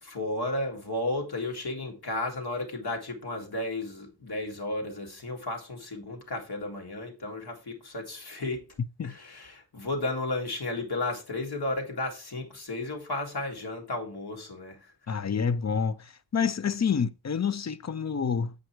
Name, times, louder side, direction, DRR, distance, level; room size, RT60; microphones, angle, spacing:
voice 1, 0.0-8.8 9.0-14.9, left 2 dB, 60° left, 2.1 m, -33 dB
voice 2, 15.1-18.5, left 6 dB, 40° left, 0.6 m, -28 dB
8.0 x 5.2 x 4.5 m
wide cardioid pair, 100°, 44 cm